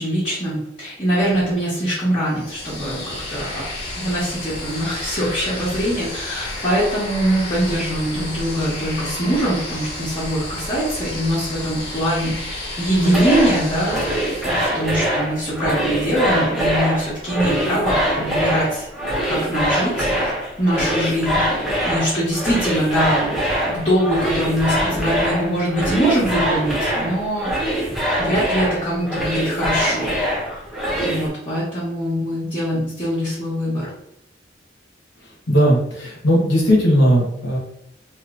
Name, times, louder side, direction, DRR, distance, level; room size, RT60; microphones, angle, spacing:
voice 1, 0.0-3.7 4.0-14.2 14.4-18.9 19.2-20.2 20.6-27.5 28.2-30.1 31.0-33.9, equal, 30° left, -11 dB, 1.1 m, -23 dB
sound 1, 2.3-15.1, left 1 dB, 60° left, 1.1 m, -31 dB
sound 2, 13.0-31.3, equal, ahead, 0.8 m, -23 dB
voice 2, 35.5-37.6, equal, 90° left, -3 dB, 1.3 m, -17 dB
3.0 x 2.8 x 2.5 m, 0.77 s
head